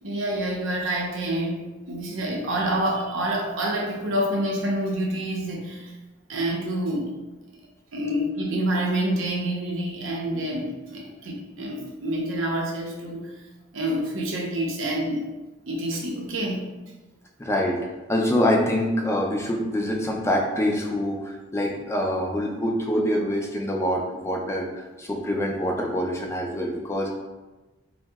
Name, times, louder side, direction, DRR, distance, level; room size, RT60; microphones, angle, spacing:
voice 1, 0.0-5.9 6.3-7.1 7.9-13.4 13.7-15.3 15.7-16.7, right 1 dB, 70° right, -1 dB, 0.5 m, -27 dB
voice 2, 17.4-17.8 18.1-27.1, equal, 15° left, 0 dB, 0.3 m, -25 dB
2.7 x 2.0 x 3.4 m, 1.1 s
head